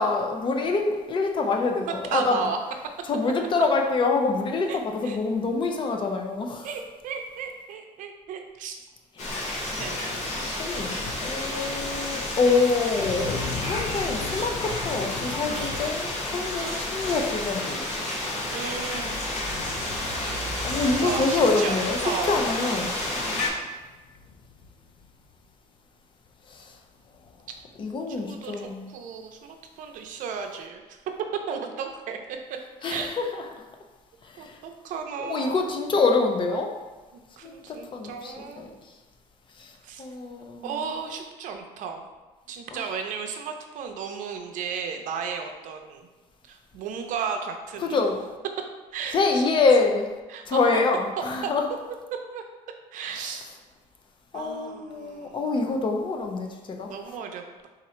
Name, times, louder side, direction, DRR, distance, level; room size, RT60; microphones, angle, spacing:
voice 1, 0.0-2.5 3.0-6.7 10.6-17.9 20.6-22.9 26.5-26.8 27.8-28.9 32.8-33.7 34.2-34.6 35.2-36.8 37.4-38.9 39.6-39.7 40.0-40.8 42.7-42.8 47.8-48.2 49.1-50.1 50.5-51.7 53.2-53.3 54.3-56.9, left 3 dB, 35° left, 3 dB, 0.6 m, -26 dB
voice 2, 1.9-2.6 4.7-4.8 5.0-5.2 6.6-8.8 9.8-10.4 16.6-16.9 18.5-19.5 21.0-22.4 28.2-31.0 31.5-32.4 32.8-33.1 34.4-35.8 37.4-38.7 39.8-40.1 40.6-42.1 42.5-46.1 46.4-48.0 48.9-49.6 50.3-50.6 51.4-51.5 52.1-52.4 52.9-53.4 54.3-55.4 56.8-57.7, right 6 dB, 70° right, 4 dB, 0.6 m, -34 dB
sound 1, 9.2-23.5, left 1 dB, 60° left, 1.2 m, -31 dB
sound 2, 9.6-25.3 26.5-26.8 27.0-27.7, left 4 dB, 85° left, 0.5 m, -41 dB
3.7 x 2.8 x 4.3 m, 1.2 s
cardioid pair, 125°, 14 cm